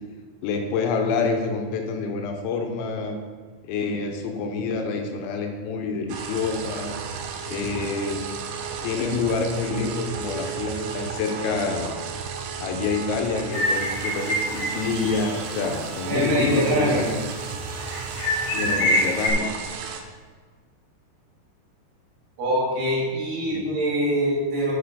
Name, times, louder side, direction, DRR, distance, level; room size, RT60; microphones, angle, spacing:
voice 1, 0.4-3.2 3.6-6.9 7.5-8.3 8.8-12.0 12.6-17.0 18.5-19.6 23.5-23.6, left 4 dB, 85° left, 4 dB, 3.0 m, -27 dB
sound 1, 6.1-20.0, right 6 dB, 85° right, 3.0 m, -34 dB
sound 2, 13.5-15.4 15.8-15.9 16.4-17.2 17.8-19.3, equal, 45° left, 2.6 m, -26 dB
voice 2, 16.1-17.1 22.4-24.8, right 1 dB, 60° right, -5 dB, 4.1 m, -23 dB
8.2 x 6.6 x 5.0 m, 1.5 s
omnidirectional pair, 5.4 m